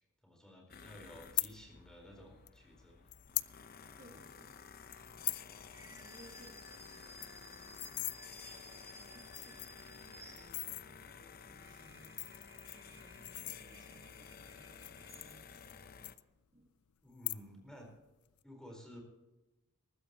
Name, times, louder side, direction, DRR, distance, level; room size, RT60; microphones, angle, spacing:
voice 1, 0.0-3.1 17.0-17.9 18.4-19.0, equal, 5° left, 1 dB, 4.2 m, -54 dB
sound 1, 0.7-16.1, left 6 dB, 45° left, 0.7 m, -54 dB
sound 2, 1.2-1.5 2.5-2.6 3.1-3.5 3.9-4.0 4.2-4.5 4.9-5.5 5.8-6.0 6.3-6.4 6.7-6.8 7.0-8.2 8.8-8.9 9.3-9.9 10.4-10.8 11.8-14.0 14.7-15.8 16.0-16.7 17.1-17.7 18.0-18.4, left 19 dB, 80° left, 0.5 m, -40 dB
voice 2, 4.0-4.7 4.9-15.8 16.5-16.7, right 1 dB, 35° right, 1 dB, 1.6 m, -63 dB
sound 3, 5.7-10.9 11.4-15.7, right 1 dB, 15° right, 0.8 m, -57 dB
20.0 x 14.5 x 3.0 m, 1.1 s
head